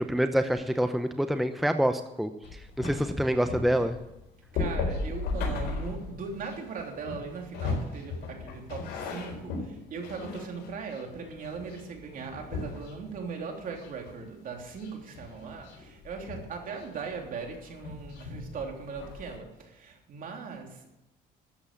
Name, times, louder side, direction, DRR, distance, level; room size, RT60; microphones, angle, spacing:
voice 1, 0.0-4.0, equal, ahead, 8 dB, 0.7 m, -27 dB
sound 1, 2.4-13.3 13.7-14.3 14.5-19.4, left 3 dB, 85° left, 4.3 m, -37 dB
voice 2, 4.5-21.0, right 5 dB, 55° right, 2 dB, 3.2 m, -39 dB
13.0 x 8.0 x 8.5 m, 0.93 s
cardioid pair, 110°, 17 cm